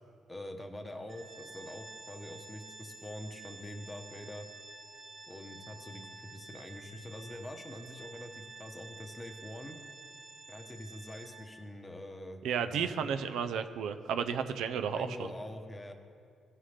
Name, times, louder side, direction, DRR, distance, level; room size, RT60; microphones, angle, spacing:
voice 1, 0.3-4.5 5.3-9.8 10.5-13.2 14.3-14.5 14.9-15.9, left 1 dB, 15° left, 5 dB, 0.9 m, -45 dB
Organ, 1.1-11.7, right 3 dB, 40° right, 1.1 m, -50 dB
voice 2, 12.4-15.3, right 7 dB, 80° right, 9 dB, 0.5 m, -33 dB
15.5 x 5.6 x 3.3 m, 2.4 s
cardioid pair, 90°, 0 cm